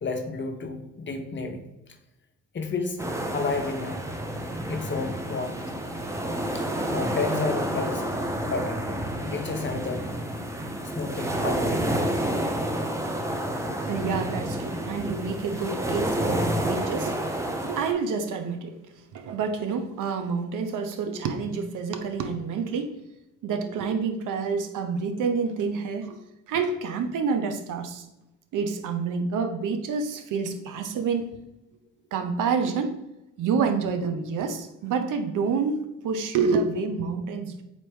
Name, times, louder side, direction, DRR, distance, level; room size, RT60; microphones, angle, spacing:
voice 1, 0.0-1.6 2.5-3.0 3.3-4.0 4.7-5.6 6.5-8.0 8.5-8.9 9.3-10.0 11.0-11.9 14.2-14.3, left 4 dB, 35° left, 5 dB, 0.8 m, -31 dB
sound 1, 3.0-17.9, right 1 dB, 10° right, 0.6 m, -29 dB
voice 2, 13.7-18.8 19.1-22.9 23.4-26.2 26.5-28.1 28.5-31.4 32.1-32.9 33.4-37.6, right 5 dB, 60° right, 7 dB, 0.7 m, -28 dB
4.0 x 3.1 x 3.3 m, 0.92 s
hypercardioid pair, 60°, 35 cm